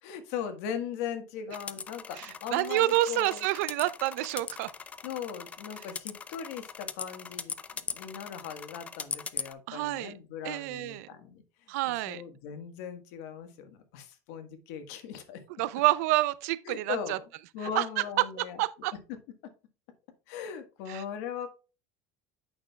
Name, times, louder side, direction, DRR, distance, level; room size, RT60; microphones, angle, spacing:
voice 1, 0.0-3.4 5.0-11.4 11.9-15.4 15.7-15.8 16.6-17.2 17.5-18.6 20.3-21.5, left 8 dB, 70° left, 1.5 m, -39 dB
sound 1, 1.5-9.5, left 6 dB, 15° left, 0.3 m, -40 dB
voice 2, 2.2-4.7 9.7-10.1 10.4-11.1 11.7-12.2 15.6-17.2 17.7-17.8 18.4-18.9 20.9-21.0, right 16 dB, 80° right, 0.5 m, -28 dB
8.7 x 6.0 x 2.3 m
cardioid pair, 160°, 8 cm